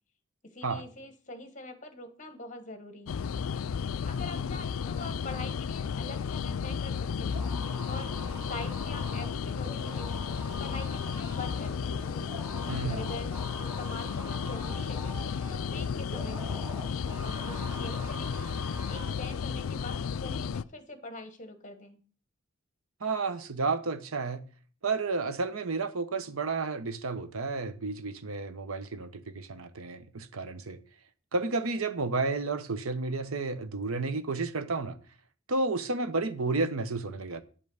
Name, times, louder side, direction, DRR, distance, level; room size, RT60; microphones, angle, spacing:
voice 1, 0.4-3.2 4.0-7.4 7.8-8.1 8.5-12.0 12.9-13.3 13.6-15.1 15.5-16.8 17.2-18.6 18.9-22.0, left 2 dB, 35° left, 1.4 m, -44 dB
sound 1, 3.1-20.6, left 6 dB, 80° left, 0.4 m, -33 dB
sound 2, 7.2-19.3, right 1 dB, 15° right, 2.4 m, -45 dB
voice 2, 12.7-13.0 23.0-24.4 24.8-30.8 31.3-35.0 35.5-37.4, right 3 dB, 85° right, 0.9 m, -31 dB
9.9 x 5.4 x 6.4 m
head